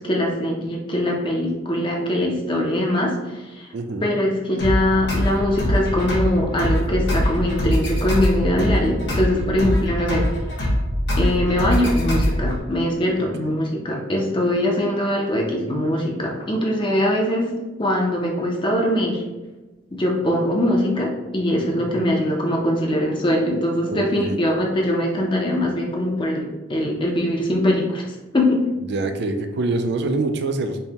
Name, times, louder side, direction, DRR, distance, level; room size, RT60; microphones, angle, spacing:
voice 1, 0.0-3.7 4.0-10.3 11.1-17.5 17.8-19.2 19.9-28.0 28.3-28.7, left 1 dB, 25° left, 0 dB, 0.5 m, -22 dB
voice 2, 3.7-4.1 9.3-9.6 13.2-13.5 21.8-22.1 23.9-24.4 28.9-30.8, right 2 dB, 60° right, 7 dB, 0.4 m, -26 dB
sound 1, 4.6-12.6, equal, 60° left, 1.1 m, -23 dB
5.4 x 2.1 x 2.8 m, 1.1 s
head